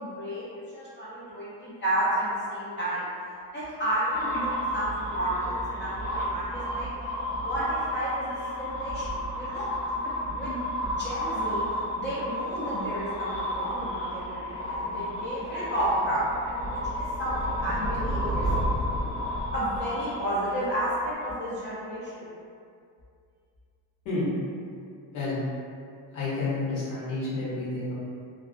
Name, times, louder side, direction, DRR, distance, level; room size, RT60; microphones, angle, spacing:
voice 1, 0.0-3.1 3.5-6.9 7.4-9.7 10.4-10.6 11.0-11.6 12.0-18.5 19.5-22.3, right 1 dB, 25° left, -10 dB, 0.4 m, -31 dB
sound 1, 4.1-21.1, equal, 70° left, 0.7 m, -31 dB
voice 2, 26.1-27.9, left 3 dB, 90° left, -9 dB, 1.1 m, -30 dB
2.4 x 2.2 x 2.4 m, 2.4 s
cardioid pair, 115°, 45 cm